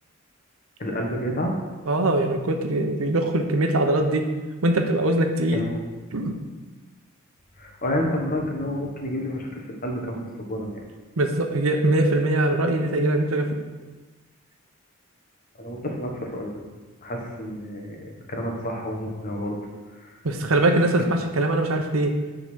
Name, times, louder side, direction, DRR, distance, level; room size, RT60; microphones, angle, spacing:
voice 1, 0.8-1.5 5.5-5.8 7.6-10.8 15.6-16.5 17.0-19.6 19.9-20.1, equal, 40° left, 1 dB, 1.4 m, -29 dB
voice 2, 1.9-4.2 4.6-5.6 6.1-6.4 11.2-13.6 20.2-22.2, right 1 dB, 75° right, 5 dB, 0.9 m, -22 dB
9.3 x 3.9 x 6.2 m, 1.3 s
head